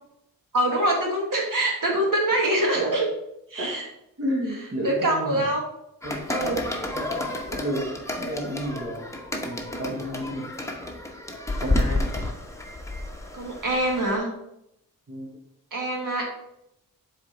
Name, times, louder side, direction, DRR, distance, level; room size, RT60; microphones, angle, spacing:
voice 1, 0.5-3.1 3.5-3.8 4.8-5.6 6.3-6.8 13.3-14.3 15.7-16.3, right 1 dB, 60° right, -1 dB, 1.7 m, -24 dB
voice 2, 4.2-5.5 6.0-6.6 6.9-7.9 8.2-9.0 9.3-10.8 11.6-12.1 15.1-15.3, equal, 40° right, -2 dB, 1.4 m, -32 dB
sound 1, 6.0-14.2, left 2 dB, 10° left, 0.9 m, -30 dB
7.0 x 3.6 x 4.2 m, 0.80 s
cardioid pair, 85°, 37 cm